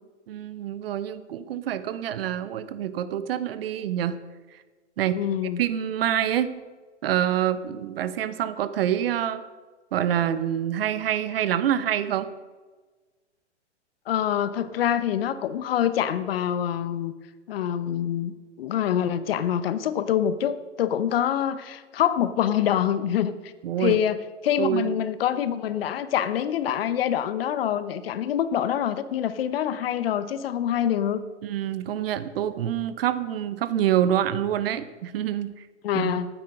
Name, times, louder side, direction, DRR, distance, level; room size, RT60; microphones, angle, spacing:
voice 1, 0.3-4.2 4.5-4.6 5.0-5.2 5.6-6.5 7.0-9.4 9.9-12.3 23.6-24.0 24.6-24.9 31.4-35.7 35.9-36.2, right 10 dB, 55° right, 13 dB, 1.0 m, -26 dB
voice 2, 5.1-5.6 14.1-17.1 17.5-23.5 23.8-31.2 35.8-36.3, left 10 dB, 55° left, 13 dB, 1.0 m, -25 dB
11.5 x 9.5 x 6.4 m, 1.3 s
hypercardioid pair, 115°, 36 cm